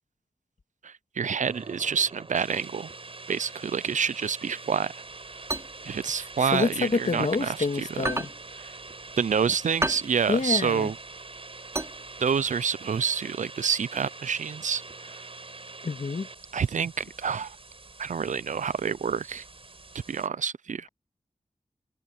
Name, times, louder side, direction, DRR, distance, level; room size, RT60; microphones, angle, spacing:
voice 1, 0.8-2.9 3.3-5.0 5.8-8.1 8.6-8.7 9.2-11.0 12.2-15.2 16.5-17.6 18.0-19.4 20.1-20.9, right 6 dB, 75° right, 0.5 m, -28 dB
sound 1, 1.4-20.3, right 3 dB, 45° right, 5.8 m, -44 dB
sound 2, 5.1-7.5 7.9-12.6, right 1 dB, 20° right, 4.6 m, -33 dB
voice 2, 6.2-8.3 10.3-10.9 15.8-16.3, left 4 dB, 70° left, 2.4 m, -27 dB
wide cardioid pair, 65°, 13 cm